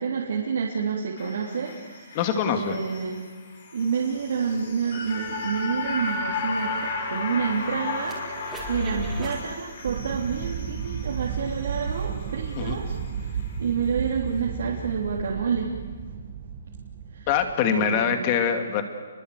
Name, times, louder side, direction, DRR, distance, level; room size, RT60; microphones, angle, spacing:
voice 1, 0.0-2.2 2.5-15.7 17.1-17.3 17.7-18.3, right 6 dB, 60° right, -3 dB, 3.4 m, -29 dB
sound 1, 1.2-13.5 13.9-14.0, left 3 dB, 40° left, 5.7 m, -35 dB
voice 2, 2.1-2.8 12.6-12.8 17.3-18.8, left 7 dB, 25° left, 6 dB, 2.2 m, -24 dB
sound 2, 4.0-4.1 4.4-9.4, equal, 5° right, 4.3 m, -38 dB
sound 3, 9.8-17.7, right 7 dB, 35° right, 2.2 m, -33 dB
30.0 x 22.5 x 8.0 m, 1.5 s
hypercardioid pair, 170°, 0 cm